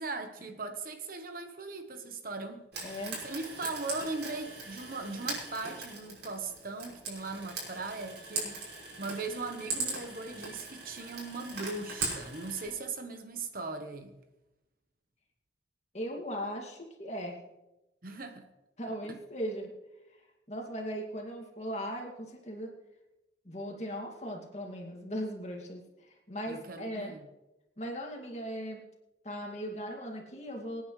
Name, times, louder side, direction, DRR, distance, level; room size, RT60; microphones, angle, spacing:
voice 1, 0.0-3.0 3.2-14.1 18.0-18.5 26.5-27.3, right 3 dB, 50° right, 6 dB, 1.1 m, -39 dB
Frying (food), 2.7-12.7, right 3 dB, 70° right, 5.6 m, -40 dB
voice 2, 2.8-3.2 15.9-17.4 18.8-19.7 20.5-22.7 23.4-27.1 27.8-28.8 29.2-30.8, equal, 35° left, 1 dB, 2.3 m, -38 dB
25.0 x 9.6 x 3.2 m, 1.0 s
head